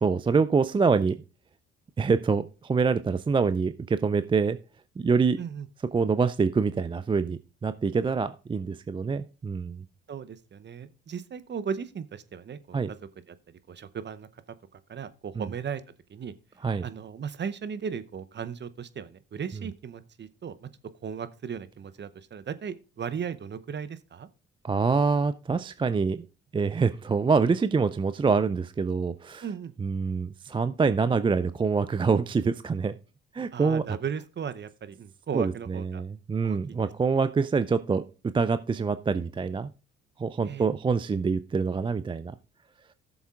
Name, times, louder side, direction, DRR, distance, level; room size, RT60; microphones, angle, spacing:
voice 1, 0.0-1.2 2.0-4.6 5.0-5.4 5.9-9.8 12.7-12.9 15.4-15.5 16.6-16.8 24.6-26.3 26.5-29.4 29.8-32.9 33.3-33.8 35.3-38.0 38.3-39.7 40.2-42.3, right 5 dB, 15° right, 0.4 m, -25 dB
voice 2, 5.4-5.7 10.1-13.0 13.3-14.4 14.7-15.8 16.1-16.3 16.8-20.7 21.0-24.3 29.4-29.7 33.5-36.0 36.4-36.8 37.1-37.3 40.4-40.7, right 7 dB, 35° right, 0.8 m, -36 dB
17.0 x 7.1 x 2.4 m
hypercardioid pair, 50°, 32 cm